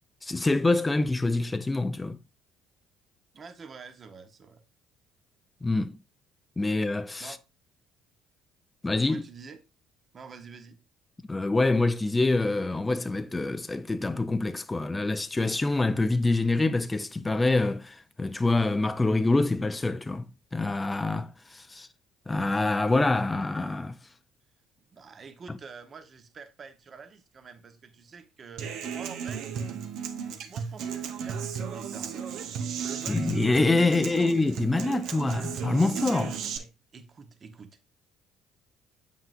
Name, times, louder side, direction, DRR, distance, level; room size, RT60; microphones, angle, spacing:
voice 1, 0.2-2.2 5.6-6.0 6.6-7.4 8.8-9.3 11.3-21.9 22.3-24.0 33.1-36.4, left 2 dB, 20° left, 0.5 m, -26 dB
voice 2, 3.3-4.6 7.2-7.4 9.1-9.6 10.1-10.8 24.9-28.7 28.9-29.5 30.5-33.4 33.9-34.3 36.5-37.8, right 5 dB, 45° right, 1.1 m, -47 dB
Human voice / Acoustic guitar, 28.6-36.6, right 7 dB, 70° right, 0.9 m, -34 dB
7.5 x 5.6 x 2.6 m
hypercardioid pair, 65°, 0 cm